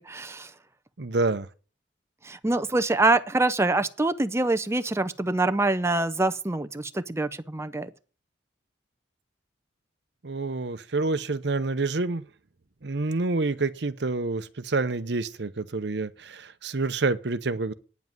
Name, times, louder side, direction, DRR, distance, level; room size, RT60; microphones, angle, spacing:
voice 1, 0.1-0.5 2.2-7.9, right 2 dB, 15° right, 0.6 m, -25 dB
voice 2, 1.0-1.5 10.2-12.2 12.8-17.7, right 3 dB, 65° right, 0.8 m, -28 dB
9.5 x 7.4 x 9.2 m
head